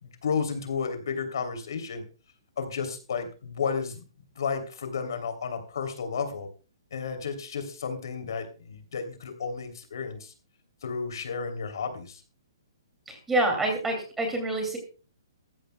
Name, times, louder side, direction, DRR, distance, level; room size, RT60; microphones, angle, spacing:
voice 1, 0.0-2.0 2.6-4.0 4.3-6.5 6.9-10.3 10.8-12.2, left 5 dB, 60° left, 7 dB, 3.1 m, -32 dB
voice 2, 13.1-14.8, right 2 dB, 5° right, 3 dB, 2.5 m, -27 dB
17.0 x 14.5 x 2.2 m, 0.34 s
hypercardioid pair, 175°, 2 cm